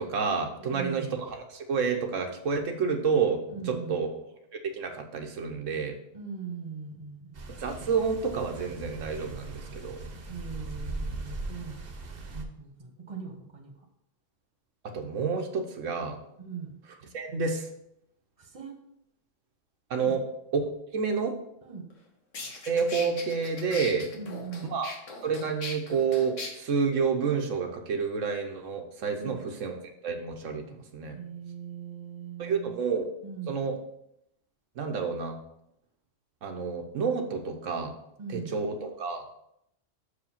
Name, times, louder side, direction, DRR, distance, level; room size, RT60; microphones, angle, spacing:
voice 1, 0.0-4.1 4.7-6.0 7.6-10.0 14.9-16.2 17.1-17.7 19.9-20.2 20.5-21.3 22.7-24.1 24.6-24.9 25.2-29.8 30.0-31.2 32.4-33.1 33.5-33.8 34.8-35.4 36.4-37.9 38.3-39.4, right 5 dB, 80° right, 4 dB, 1.2 m, -29 dB
voice 2, 0.6-1.1 3.5-4.0 6.1-7.6 10.3-11.9 12.3-13.7 16.4-16.7 18.4-18.8 20.0-20.2 21.6-21.9 24.1-24.7 29.1-29.4 31.1-32.8 33.2-33.6 38.2-38.6, right 6 dB, 25° right, 3 dB, 1.3 m, -40 dB
sound 1, 7.3-12.4, right 2 dB, 50° right, 1.1 m, -39 dB
sound 2, 21.9-22.0 22.3-26.5, left 3 dB, 75° left, 1.6 m, -39 dB
6.4 x 4.9 x 5.6 m, 0.77 s
omnidirectional pair, 1.3 m